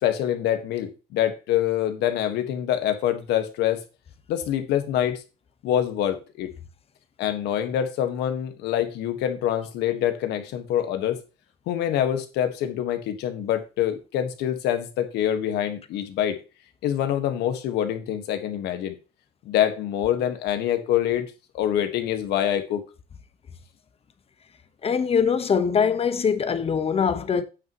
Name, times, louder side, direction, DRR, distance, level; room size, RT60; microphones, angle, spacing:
voice 1, 0.0-3.8 4.3-5.2 5.6-6.5 7.2-11.2 11.7-16.4 16.8-18.9 19.4-22.8, left 10 dB, 85° left, 1.5 m, -25 dB
voice 2, 24.8-27.4, left 6 dB, 35° left, 1.1 m, -22 dB
8.8 x 7.9 x 3.0 m
cardioid pair, 110°, 17 cm